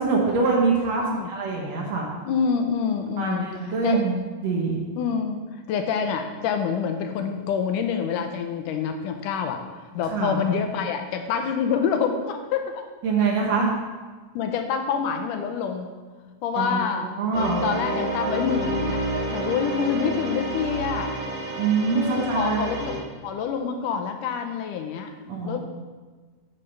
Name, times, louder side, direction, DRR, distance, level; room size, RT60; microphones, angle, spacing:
voice 1, 0.0-1.0 1.3-2.1 3.2-4.2 4.4-4.8 10.1-10.4 13.0-13.8 16.5-16.8 17.2-17.6 21.5-22.6 25.3-25.6, right 4 dB, 65° right, -1 dB, 1.9 m, -24 dB
voice 2, 2.3-4.0 5.0-12.9 14.4-15.9 16.4-17.1 17.3-19.0 19.3-21.1 21.9-25.1 25.4-25.6, left 6 dB, 80° left, 5 dB, 2.1 m, -27 dB
sound 1, 17.3-23.0, right 2 dB, 45° right, 1.9 m, -29 dB
8.6 x 3.7 x 6.5 m, 1.4 s
omnidirectional pair, 3.8 m